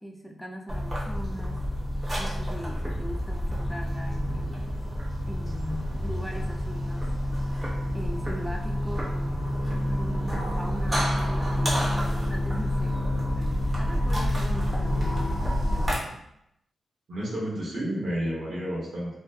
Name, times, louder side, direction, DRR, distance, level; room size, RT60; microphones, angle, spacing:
voice 1, 0.0-1.6 2.2-4.8 5.3-7.1 7.9-16.2, equal, ahead, 1 dB, 0.3 m, -40 dB
sound 1, 0.7-16.0, equal, 25° right, 0.7 m, -28 dB
voice 2, 17.1-19.2, equal, 55° right, -6 dB, 0.9 m, -31 dB
2.6 x 2.1 x 2.2 m, 0.80 s
wide cardioid pair, 125°, 0 cm